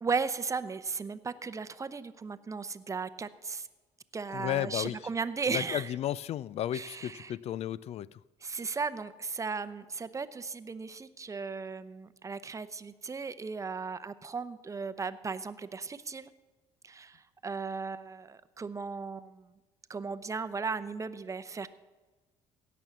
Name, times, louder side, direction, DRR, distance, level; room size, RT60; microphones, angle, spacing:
voice 1, 0.0-3.7 4.1-5.9 6.7-7.3 8.4-16.3 16.8-19.5 19.9-21.7, right 5 dB, 25° right, 13 dB, 0.7 m, -36 dB
voice 2, 4.3-5.0 5.5-8.2, left 12 dB, 55° left, 22 dB, 0.4 m, -33 dB
16.5 x 6.2 x 7.0 m, 1.2 s
supercardioid pair, 80°, 13 cm